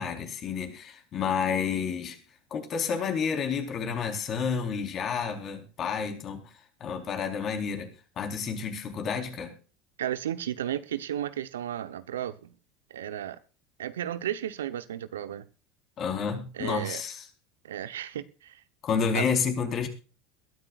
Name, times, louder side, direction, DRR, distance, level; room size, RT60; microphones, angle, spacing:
voice 1, 0.0-2.2 2.5-6.5 6.8-7.9 8.2-9.5 16.0-17.3 18.8-19.9, left 6 dB, 45° left, 4.2 m, -30 dB
voice 2, 10.0-12.5 12.9-13.4 13.8-15.4 16.5-17.0 17.6-18.6 19.1-19.2, right 11 dB, 85° right, 1.0 m, -34 dB
22.0 x 13.0 x 2.5 m
hypercardioid pair, 80°, 0 cm